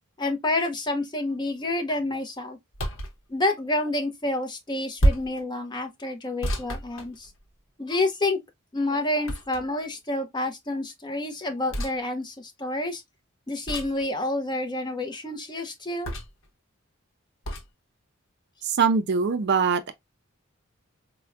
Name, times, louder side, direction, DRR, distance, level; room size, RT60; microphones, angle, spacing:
voice 1, 0.2-2.6 3.3-7.3 7.8-8.4 8.7-13.0 13.5-16.1, left 2 dB, 20° left, 0.6 m, -28 dB
sound 1, 2.7-3.2 5.0-5.4 6.4-7.6 9.3-9.9 11.7-12.0 13.7-14.0 16.0-16.5 17.4-17.7, right 1 dB, 70° left, 0.8 m, -28 dB
voice 2, 18.6-19.9, right 5 dB, 55° right, 0.4 m, -22 dB
4.4 x 2.1 x 2.4 m
head